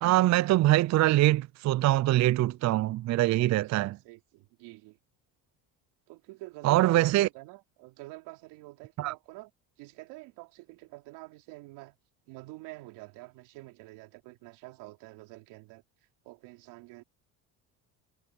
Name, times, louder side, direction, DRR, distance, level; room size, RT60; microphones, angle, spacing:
voice 1, 0.0-3.9 6.6-7.3 9.0-9.1, right 16 dB, 45° right, 0.4 m, -23 dB
voice 2, 3.8-5.0 6.1-9.5 9.8-12.0 12.3-15.8 16.3-17.0, right 22 dB, 80° right, 3.5 m, -47 dB
supercardioid pair, 85°, 41 cm